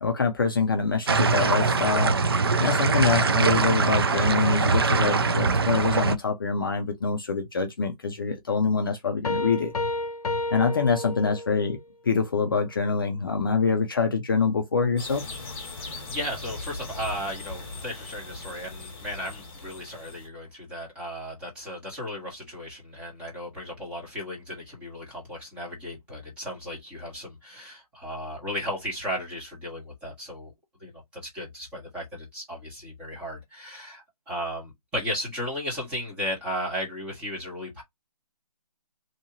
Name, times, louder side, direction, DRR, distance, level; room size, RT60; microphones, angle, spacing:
voice 1, 0.0-2.2 2.6-9.7 10.5-11.8 12.0-15.2, left 5 dB, 35° left, 0.4 m, -25 dB
sound 1, 1.1-6.2, right 4 dB, 40° right, 0.4 m, -22 dB
sound 2, 9.2-11.7, left 2 dB, 65° left, 0.7 m, -30 dB
sound 3, 15.0-20.3, left 3 dB, 20° left, 1.1 m, -39 dB
voice 2, 15.8-30.5 30.8-37.8, equal, 5° right, 0.9 m, -35 dB
2.8 x 2.7 x 2.6 m
hypercardioid pair, 160°, 20 cm